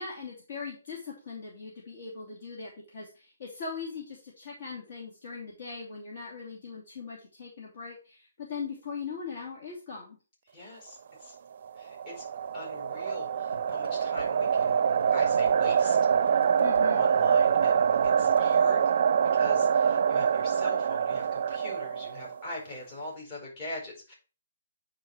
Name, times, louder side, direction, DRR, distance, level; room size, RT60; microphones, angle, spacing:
voice 1, 0.0-10.2 16.6-17.1, left 5 dB, 50° left, -3 dB, 2.9 m, -40 dB
voice 2, 10.5-11.3 11.8-12.3 12.5-14.8 15.1-16.0 16.3-16.4 16.9-18.9 19.3-24.1, left 1 dB, 30° left, -4 dB, 5.1 m, -42 dB
sound 1, 11.6-22.5, right 7 dB, 50° right, 0.5 m, -25 dB
sound 2, 13.5-18.7, left 1 dB, 90° left, 3.3 m, -50 dB
9.2 x 4.8 x 4.5 m, 0.34 s
hypercardioid pair, 155°, 0 cm